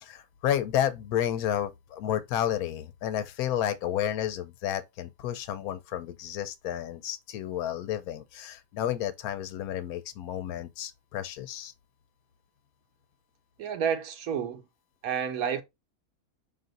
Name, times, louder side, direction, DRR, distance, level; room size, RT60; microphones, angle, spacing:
voice 1, 0.0-11.7, left 11 dB, 85° left, 1.1 m, -31 dB
voice 2, 13.6-14.6 15.0-15.6, right 7 dB, 75° right, 1.1 m, -30 dB
5.5 x 2.5 x 3.9 m
omnidirectional pair, 1.5 m